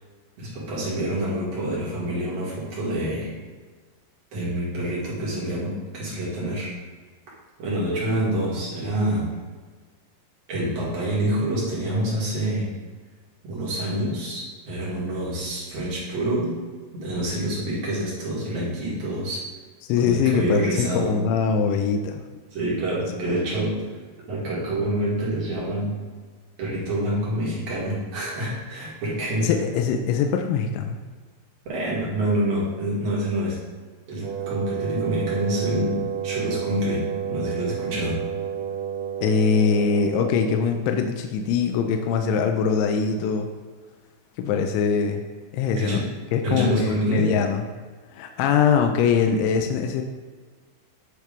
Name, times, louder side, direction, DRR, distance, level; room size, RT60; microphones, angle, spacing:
voice 1, 0.4-3.3 4.3-6.7 7.6-9.3 10.5-12.7 13.4-16.5 16.9-19.4 20.0-21.1 22.5-23.7 24.3-26.0 26.6-29.5 31.7-33.6 34.1-38.2 45.7-46.0 46.4-47.3, right 1 dB, 50° right, -6 dB, 2.1 m, -27 dB
voice 2, 19.9-22.2 23.3-23.4 29.4-31.0 39.2-43.5 44.4-45.2 45.5-46.0 46.3-47.6 48.1-50.0, left 6 dB, 85° left, 5 dB, 2.9 m, -22 dB
Wind instrument woodwind instrument, 34.2-40.8, right 8 dB, 90° right, 3.1 m, -30 dB
9.4 x 3.3 x 5.1 m, 1.5 s
omnidirectional pair, 5.4 m